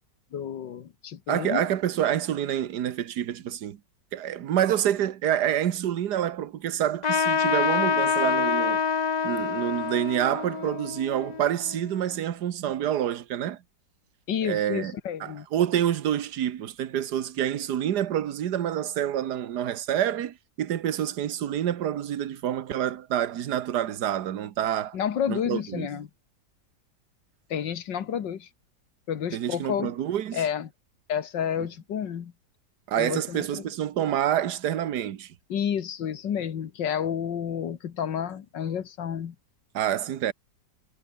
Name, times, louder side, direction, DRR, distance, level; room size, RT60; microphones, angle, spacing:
voice 1, 0.3-1.7 14.3-15.5 24.9-26.1 27.5-28.5 29.1-29.9 30.3-30.7 31.1-32.3 33.0-33.7 35.5-39.4, left 8 dB, 80° left, 2.1 m, -30 dB
voice 2, 1.3-3.8 4.1-8.8 9.2-13.6 14.4-25.0 25.3-25.9 29.3-30.4 32.9-35.3 39.7-40.3, right 10 dB, 65° right, 1.6 m, -27 dB
Trumpet, 7.0-12.0, left 6 dB, 50° left, 0.4 m, -26 dB
omnidirectional pair, 2.0 m